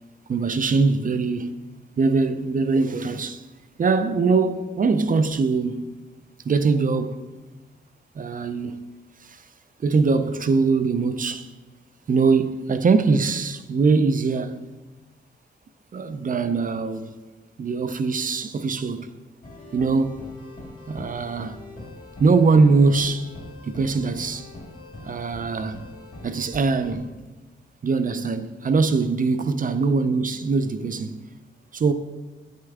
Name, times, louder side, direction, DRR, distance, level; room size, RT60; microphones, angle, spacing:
voice 1, 0.3-1.6 2.0-3.4 3.8-5.9 6.4-7.2 8.2-8.8 9.2-9.4 9.8-11.5 12.1-14.6 15.9-17.1 17.6-19.1 19.7-20.2 20.9-21.6 22.2-23.3 23.6-24.5 25.1-25.8 26.2-27.1 27.8-31.2 31.7-31.9, right 4 dB, 45° right, 0.5 m, -22 dB
sound 1, 19.4-27.0, left 2 dB, 45° left, 1.6 m, -42 dB
8.7 x 6.5 x 3.5 m
wide cardioid pair, 120°, 20 cm